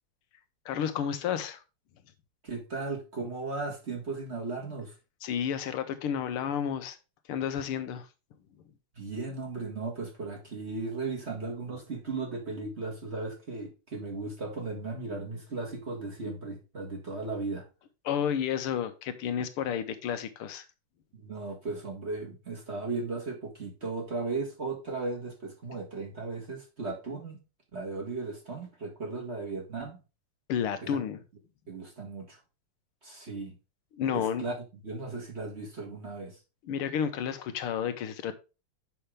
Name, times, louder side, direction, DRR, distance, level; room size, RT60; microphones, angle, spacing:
voice 1, 0.7-1.6 5.2-7.0 7.3-8.1 18.1-20.6 30.5-31.2 33.9-34.4 36.7-38.3, left 8 dB, 85° left, 10 dB, 1.8 m, -31 dB
voice 2, 2.4-4.9 9.0-17.7 21.1-27.4 27.7-30.0 30.8-31.0 31.7-32.4 33.0-33.6 34.1-34.6 34.8-36.4, right 3 dB, 30° right, 1 dB, 1.8 m, -36 dB
7.7 x 5.8 x 3.3 m, 0.29 s
omnidirectional pair, 2.4 m